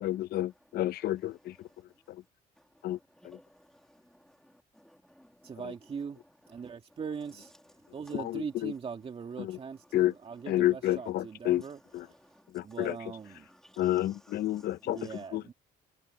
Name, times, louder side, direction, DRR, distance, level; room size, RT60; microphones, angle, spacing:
voice 1, 0.0-1.7 2.1-2.2 2.8-3.0 3.2-3.4 5.6-5.7 8.1-8.7 9.4-9.6 9.9-10.1 10.5-11.6 11.9-12.1 12.5-13.0 13.8-15.4, left 14 dB, 70° left, 0.9 m, -30 dB
voice 2, 3.2-4.4 4.7-5.2 12.2-12.4 13.5-13.8 14.5-15.1, equal, 5° left, 2.7 m, -59 dB
voice 3, 5.4-6.2 6.5-7.5 7.9-11.8 12.6-13.5 14.9-15.5, right 6 dB, 35° right, 2.1 m, -40 dB
cardioid pair, 110°, 17 cm